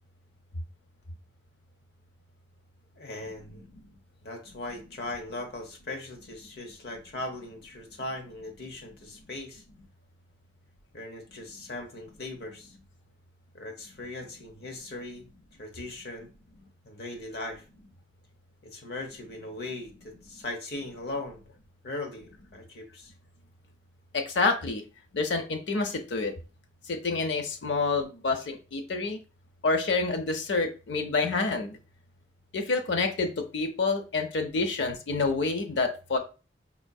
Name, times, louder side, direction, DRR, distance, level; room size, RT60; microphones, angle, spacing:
voice 1, 2.9-3.6 4.2-9.6 10.9-12.7 13.5-15.3 15.6-16.3 16.8-17.6 18.6-21.4 21.8-23.1, left 2 dB, 65° left, 2 dB, 0.9 m, -39 dB
voice 2, 24.1-24.8 25.1-26.3 26.9-29.2 29.6-31.8 32.5-36.2, left 3 dB, 85° left, 4 dB, 0.6 m, -28 dB
4.3 x 2.6 x 2.3 m, 0.33 s
head